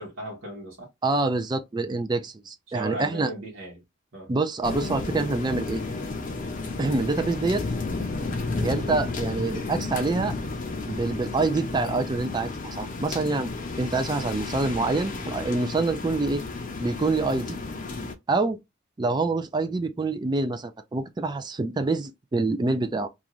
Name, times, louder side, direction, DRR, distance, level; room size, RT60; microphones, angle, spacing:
voice 1, 0.0-0.9 2.7-3.8 4.1-4.3 16.1-16.2, right 1 dB, 80° right, 1.0 m, -37 dB
voice 2, 1.0-3.3 4.3-5.8 6.8-7.6 8.6-10.3 10.9-13.5 13.8-16.4 16.8-17.6 18.3-18.6 19.0-23.1, right 3 dB, 20° right, 0.3 m, -26 dB
sound 1, 4.6-18.1, left 3 dB, 40° left, 0.6 m, -32 dB
2.5 x 2.4 x 2.9 m
head